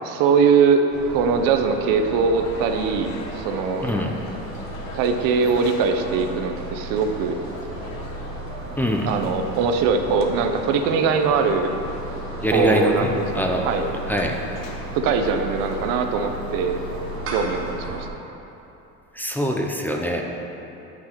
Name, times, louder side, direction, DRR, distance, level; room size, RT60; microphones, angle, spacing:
voice 1, 0.0-0.8 1.1-3.9 4.9-7.4 9.1-11.8 12.5-14.0 14.9-16.8 17.3-18.1, right 5 dB, 90° right, 6 dB, 0.6 m, -21 dB
sound 1, 0.9-18.1, right 2 dB, 40° right, 1.1 m, -35 dB
sound 2, 2.3-17.8, left 4 dB, 80° left, 0.8 m, -42 dB
voice 2, 3.8-4.1 8.8-9.1 12.4-13.7 14.1-14.4 19.1-20.2, equal, 5° left, 0 dB, 0.4 m, -23 dB
9.6 x 6.0 x 2.9 m, 2.9 s
cardioid pair, 130°, 33 cm